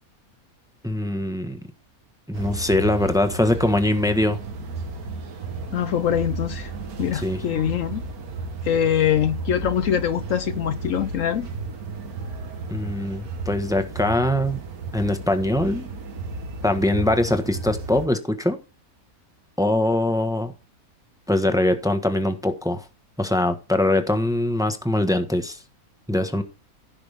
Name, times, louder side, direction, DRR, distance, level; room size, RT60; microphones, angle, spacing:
voice 1, 0.8-1.6 2.3-4.4 7.1-7.4 12.7-14.6 14.9-15.9 16.6-18.6 19.6-20.5 21.3-22.9 23.2-25.6 26.1-26.4, left 1 dB, 5° right, 1.2 m, -22 dB
sound 1, 2.3-18.1, right 3 dB, 75° right, 1.8 m, -33 dB
voice 2, 5.7-6.7 7.0-8.0 8.6-11.5, left 9 dB, 65° left, 1.0 m, -23 dB
16.0 x 6.0 x 3.5 m
omnidirectional pair, 1.6 m